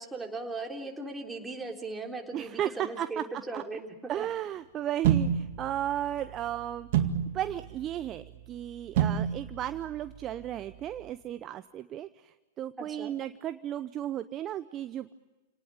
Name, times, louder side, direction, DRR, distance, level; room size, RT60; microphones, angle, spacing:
voice 1, 0.0-3.9 4.2-4.3 12.8-13.1, right 3 dB, 10° right, 1 dB, 3.7 m, -38 dB
voice 2, 2.3-3.2 3.5-3.6 4.1-6.9 7.3-15.1, right 11 dB, 30° right, 12 dB, 0.8 m, -34 dB
sound 1, 5.0-11.1, right 9 dB, 55° right, 2.2 m, -32 dB
29.0 x 19.0 x 8.7 m, 1.2 s
hypercardioid pair, 105°, 0 cm